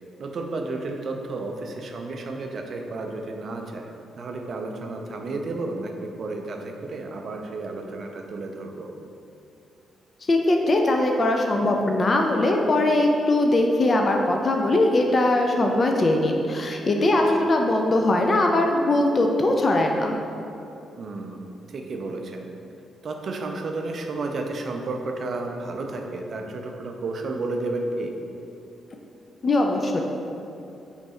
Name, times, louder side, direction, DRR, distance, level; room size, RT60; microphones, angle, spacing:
voice 1, 0.2-8.9 17.1-17.5 21.0-21.4 21.7-22.5 23.0-28.1, right 2 dB, 55° right, 3 dB, 0.4 m, -32 dB
voice 2, 10.3-20.2 29.4-30.0, left 2 dB, 40° left, 2 dB, 0.3 m, -21 dB
3.1 x 2.6 x 4.1 m, 2.7 s
hypercardioid pair, 40°, 0 cm